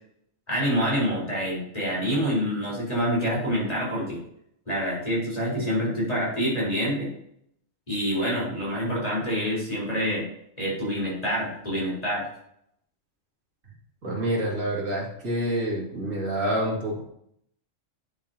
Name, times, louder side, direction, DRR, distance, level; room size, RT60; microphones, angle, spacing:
voice 1, 0.5-4.2 4.7-7.1 7.9-10.3 10.6-12.3, equal, 30° left, -6 dB, 4.0 m, -26 dB
voice 2, 14.0-17.0, right 1 dB, 85° right, -4 dB, 2.8 m, -27 dB
10.5 x 7.1 x 2.8 m, 0.73 s
omnidirectional pair, 1.3 m